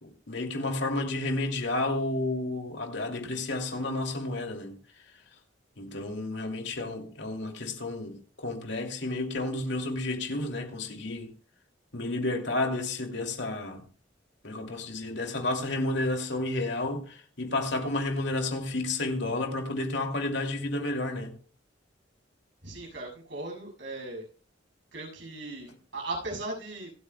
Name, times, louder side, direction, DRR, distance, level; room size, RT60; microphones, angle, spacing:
voice 1, 0.0-4.8 5.8-11.3 11.9-13.8 14.4-21.3, left 2 dB, 65° left, 2.6 m, -31 dB
voice 2, 22.6-24.2 24.9-26.9, right 2 dB, 75° right, 7.2 m, -38 dB
26.5 x 8.9 x 2.3 m
head